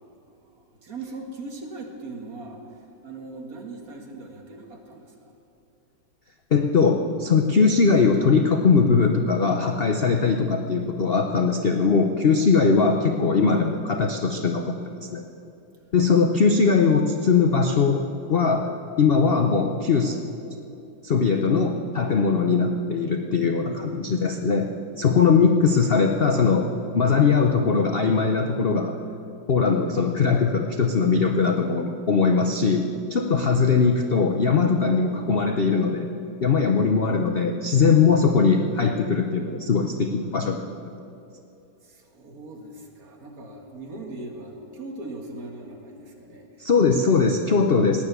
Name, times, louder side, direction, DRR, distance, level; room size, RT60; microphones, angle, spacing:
voice 1, 0.4-2.6 3.0-5.3 41.8-47.0, right 2 dB, 50° right, 2 dB, 2.1 m, -40 dB
voice 2, 6.5-15.2 15.9-18.0 18.3-18.7 19.0-20.2 21.0-24.7 25.0-26.7 26.9-29.0 29.5-36.1 36.4-40.6 46.6-48.0, left 5 dB, 65° left, 4 dB, 0.5 m, -20 dB
17.0 x 10.0 x 8.2 m, 2.7 s
omnidirectional pair, 2.1 m